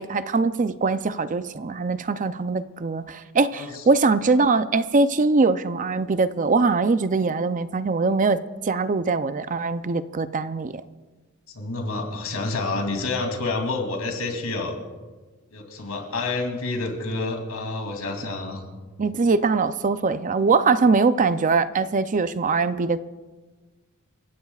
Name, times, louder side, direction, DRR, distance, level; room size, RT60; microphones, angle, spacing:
voice 1, 0.0-10.7 19.0-23.0, right 4 dB, 35° right, 12 dB, 0.5 m, -22 dB
voice 2, 3.5-3.8 11.5-14.7 15.5-18.7, left 3 dB, 90° left, 3 dB, 2.9 m, -28 dB
28.5 x 16.0 x 2.4 m, 1.3 s
head